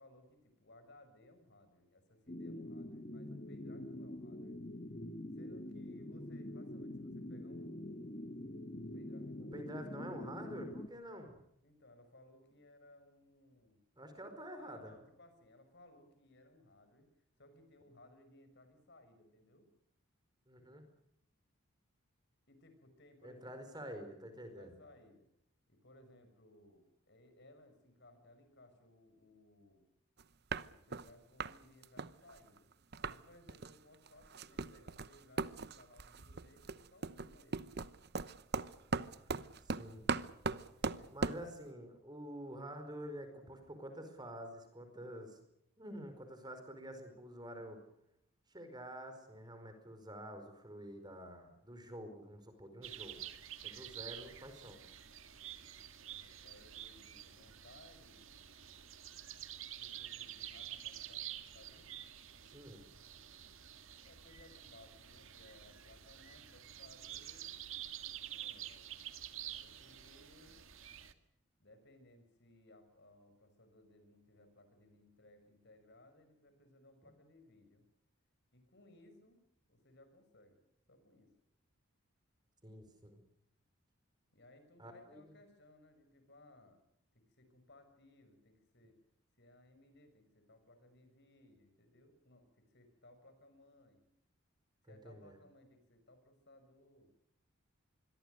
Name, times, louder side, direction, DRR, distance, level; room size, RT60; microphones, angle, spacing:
voice 1, 0.0-4.6 5.4-8.3 8.8-10.2 11.6-13.8 14.6-17.1 17.4-19.7 22.5-23.8 24.6-25.3 25.7-29.9 30.7-32.7 33.1-37.7 40.6-41.2 56.0-58.4 59.6-61.9 64.0-67.5 68.3-69.0 69.4-70.7 71.6-77.8 78.5-79.4 79.7-80.6 80.9-81.3 84.3-86.8 87.1-88.9 89.4-94.0 94.8-97.1, left 1 dB, 55° left, 9 dB, 6.0 m, -63 dB
sound 1, 2.3-10.9, left 1 dB, 35° left, 1.3 m, -45 dB
voice 2, 9.4-11.3 14.0-14.9 20.5-20.8 23.2-24.7 39.7-40.0 41.1-45.4 45.8-47.8 48.5-53.3 53.6-54.8 62.4-62.8 82.6-83.2 84.8-85.2 94.8-95.4, equal, 20° right, 8 dB, 4.8 m, -48 dB
sound 2, 30.2-30.3 30.5-31.1 31.4-31.6 31.8-33.2 33.5-33.8 34.1-41.5, right 4 dB, 50° right, 0.9 m, -39 dB
sound 3, 52.8-71.1, right 11 dB, 65° right, 1.9 m, -49 dB
26.0 x 22.5 x 6.6 m, 0.78 s
head